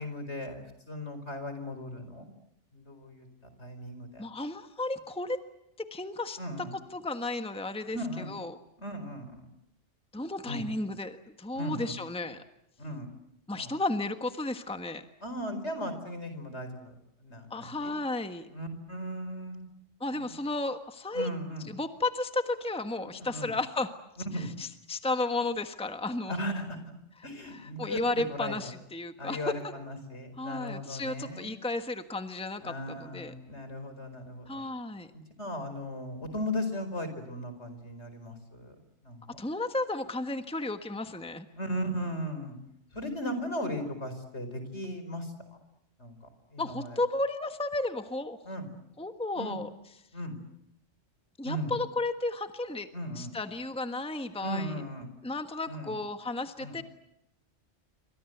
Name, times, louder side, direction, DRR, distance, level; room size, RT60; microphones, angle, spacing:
voice 1, 0.0-2.3 2.7-3.3 3.6-4.2 6.4-6.7 7.9-8.3 8.8-9.5 10.5-10.7 11.5-11.9 12.8-13.1 13.5-13.7 15.2-16.9 17.2-17.9 18.5-19.7 20.1-20.3 21.1-21.7 23.2-23.5 24.3-24.5 26.3-26.8 27.2-28.0 28.3-28.5 29.2-31.5 32.6-34.6 35.1-38.7 39.0-39.2 41.6-42.6 42.9-45.6 46.0-46.1 46.5-47.0 48.4-48.7 49.4-49.6 50.1-50.4 51.4-51.7 52.9-53.3 54.4-55.1 55.7-55.9 56.6-56.8, equal, 70° left, 9 dB, 5.1 m, -37 dB
voice 2, 4.2-5.4 5.9-6.4 6.9-8.6 10.1-12.4 13.5-15.0 17.5-18.5 20.0-21.3 21.7-23.9 24.3-26.3 27.5-29.5 30.4-33.3 34.5-35.1 39.3-41.4 46.6-48.4 49.0-49.7 51.4-52.9 53.1-54.8 55.2-56.8, left 2 dB, 5° left, 8 dB, 1.3 m, -33 dB
28.5 x 25.0 x 8.0 m, 0.82 s
omnidirectional pair, 1.2 m